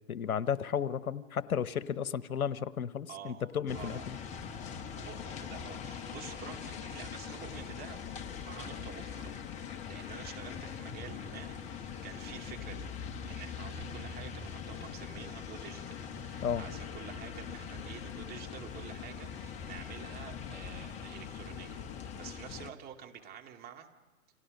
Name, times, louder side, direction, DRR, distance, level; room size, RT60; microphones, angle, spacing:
voice 1, 0.1-4.2 16.4-16.6, left 8 dB, 80° left, 15 dB, 1.1 m, -33 dB
voice 2, 3.1-3.4 3.7-4.1 4.7-9.4 9.8-12.9 13.3-21.8 22.2-23.9, right 8 dB, 20° right, 2 dB, 2.5 m, -49 dB
sound 1, 3.7-22.7, left 7 dB, 15° left, 0.9 m, -42 dB
30.0 x 26.5 x 5.4 m, 1.3 s
hypercardioid pair, 130°, 43 cm